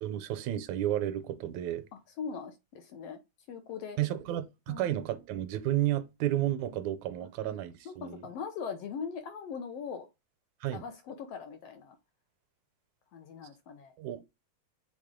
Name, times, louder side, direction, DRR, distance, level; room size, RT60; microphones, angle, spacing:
voice 1, 0.0-1.8 4.0-8.3 10.6-10.8 14.0-14.2, right 13 dB, 80° right, 2.0 m, -32 dB
voice 2, 1.9-3.2 3.5-4.0 4.7-5.0 7.8-10.1 10.7-11.9 13.1-13.9, left 6 dB, 70° left, 1.6 m, -40 dB
7.3 x 3.7 x 3.6 m
omnidirectional pair, 3.4 m